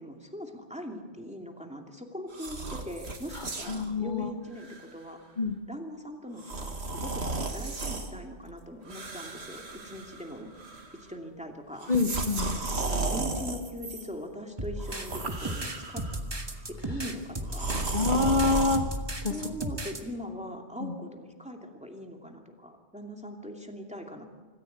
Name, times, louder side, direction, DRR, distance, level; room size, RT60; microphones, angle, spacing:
voice 1, 0.0-5.2 5.7-7.2 7.5-10.5 11.0-12.0 12.8-16.0 16.7-17.8 19.3-24.3, equal, 5° right, 2 dB, 2.6 m, -41 dB
sound 1, 2.3-3.9 4.6-4.8 6.4-8.1 8.9-10.3 10.6-11.0 11.8-14.1 14.8-16.2 17.5-18.8, right 3 dB, 75° right, 2.2 m, -34 dB
voice 2, 3.3-4.3 5.4-5.6 11.9-12.6 17.9-18.8 19.2-19.4 20.8-20.9, left 3 dB, 45° left, 4 dB, 1.6 m, -27 dB
sound 2, 14.6-20.0, right 1 dB, 25° right, 1.7 m, -35 dB
26.0 x 15.0 x 8.2 m, 1.4 s
omnidirectional pair, 1.1 m